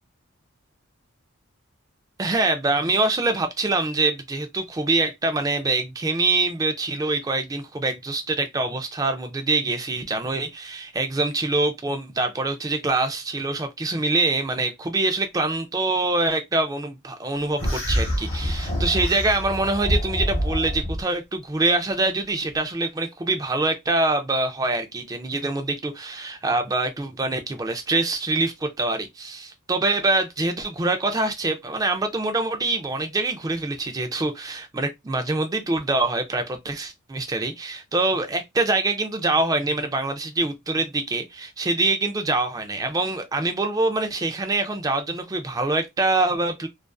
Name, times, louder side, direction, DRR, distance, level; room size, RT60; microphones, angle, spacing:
voice 1, 2.2-46.7, right 2 dB, 15° right, 0.3 m, -25 dB
sound 1, 17.6-21.0, equal, 30° left, 0.8 m, -26 dB
2.4 x 2.4 x 2.2 m
head